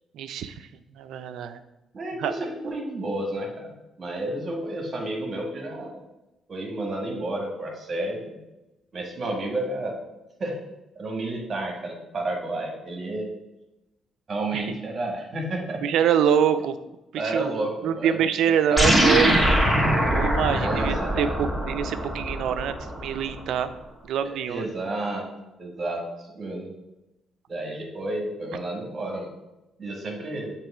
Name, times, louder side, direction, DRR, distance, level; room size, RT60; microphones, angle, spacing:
voice 1, 0.1-0.7 1.0-1.6 2.2-2.3 14.5-14.7 15.8-16.8 17.1-17.5 17.8-19.4 20.1-23.7 24.0-24.6, right 8 dB, 80° right, 11 dB, 0.4 m, -25 dB
voice 2, 1.9-3.7 4.0-6.0 6.5-8.4 8.9-10.0 10.4-10.6 11.0-13.3 14.3-15.8 17.2-18.3 18.7-18.8 20.5-21.3 24.5-25.3 25.6-26.7 27.5-29.3 29.8-30.5, right 2 dB, 45° right, 1 dB, 1.7 m, -31 dB
sound 1, 18.8-23.4, equal, ahead, 2.2 m, -22 dB
7.6 x 3.1 x 4.9 m, 0.97 s
cardioid pair, 90°, 0 cm